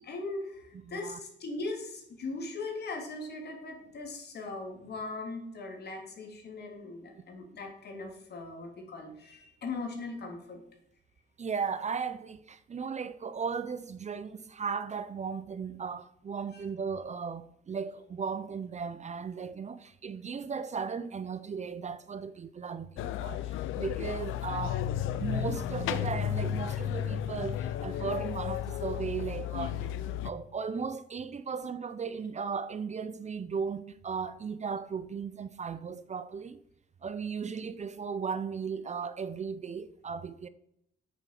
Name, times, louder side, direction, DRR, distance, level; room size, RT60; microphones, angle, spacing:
voice 1, 0.0-10.6 16.5-16.6 23.3-23.6, left 3 dB, 55° left, 3.3 m, -39 dB
voice 2, 0.9-1.2 11.4-24.9 25.2-29.9 30.2-36.6 37.0-40.5, right 6 dB, 35° right, 0.7 m, -36 dB
sound 1, 23.0-30.3, left 10 dB, 90° left, 0.7 m, -33 dB
8.5 x 7.3 x 6.9 m
cardioid pair, 90°, 20 cm